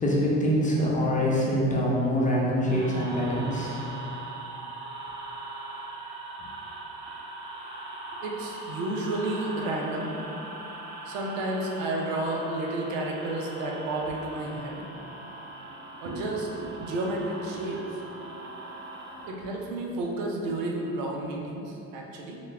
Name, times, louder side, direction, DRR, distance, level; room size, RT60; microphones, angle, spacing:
voice 1, 0.0-4.0, equal, 20° left, -4 dB, 0.7 m, -25 dB
sound 1, 2.7-19.3, right 2 dB, 30° right, 0.6 m, -41 dB
voice 2, 8.2-10.1 11.1-14.8 16.0-18.0 19.3-22.4, right 2 dB, 90° right, 0 dB, 0.6 m, -31 dB
3.2 x 2.2 x 3.3 m, 2.8 s
supercardioid pair, 75°, 38 cm